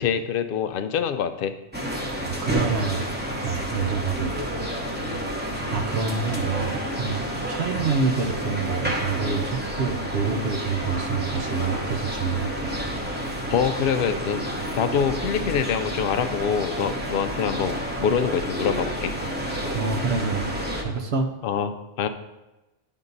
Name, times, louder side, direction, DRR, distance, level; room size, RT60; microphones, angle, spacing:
voice 1, 0.0-1.5 13.5-14.5 14.8-19.1 21.4-22.1, left 7 dB, 60° left, 9 dB, 0.6 m, -25 dB
sound 1, 1.7-20.8, equal, 10° right, 0.8 m, -30 dB
voice 2, 2.2-3.1 3.4-4.4 5.7-12.8 19.7-21.3, right 5 dB, 65° right, 5 dB, 0.9 m, -27 dB
10.5 x 3.7 x 3.9 m, 1.0 s
omnidirectional pair, 1.2 m